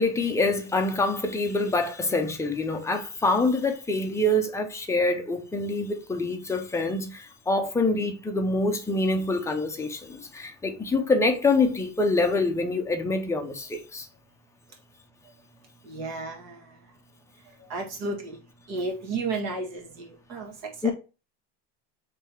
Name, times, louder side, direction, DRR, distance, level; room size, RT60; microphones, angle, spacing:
voice 1, 0.0-14.1 20.8-20.9, left 2 dB, 10° left, 0.6 m, -25 dB
voice 2, 15.8-16.7 17.7-18.4 18.7-20.9, right 3 dB, 50° right, 1.6 m, -33 dB
3.6 x 3.3 x 4.4 m
cardioid pair, 155°, 34 cm